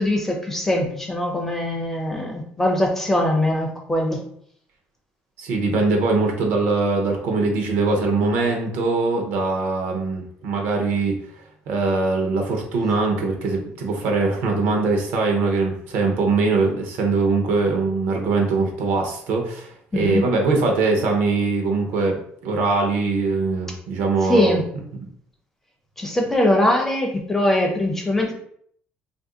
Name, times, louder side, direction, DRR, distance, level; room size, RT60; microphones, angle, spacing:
voice 1, 0.0-4.2 19.9-20.2 24.3-24.7 26.0-28.3, left 1 dB, 10° left, 1 dB, 0.4 m, -21 dB
voice 2, 5.4-11.2 11.7-24.6, right 3 dB, 70° right, 1 dB, 0.8 m, -22 dB
2.7 x 2.6 x 3.7 m, 0.64 s
cardioid pair, 175°, 4 cm